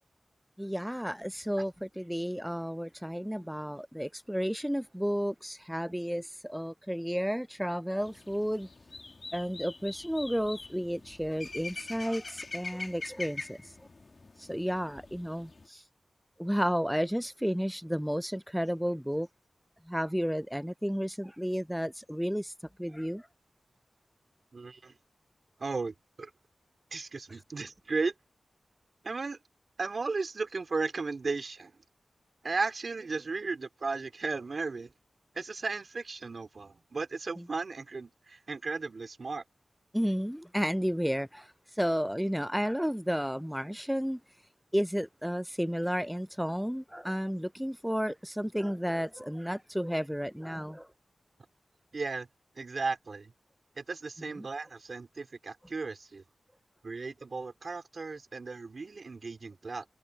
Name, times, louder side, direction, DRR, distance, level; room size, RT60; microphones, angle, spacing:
voice 1, 0.6-8.7 9.3-13.7 14.4-15.8 16.4-19.3 19.9-22.5 22.8-23.3 37.4-37.5 39.9-44.2 44.7-50.9 54.4-54.5, equal, ahead, 0.4 m, -32 dB
sound 1, 8.0-15.7, left 3 dB, 50° left, 2.5 m, -44 dB
voice 2, 24.5-24.9 25.6-26.3 26.9-28.1 29.0-29.4 29.8-31.7 32.4-34.9 35.3-39.4 51.9-52.3 52.6-53.3 53.8-56.2 56.8-59.8, right 4 dB, 60° right, 2.9 m, -35 dB
cardioid pair, 60°, 0 cm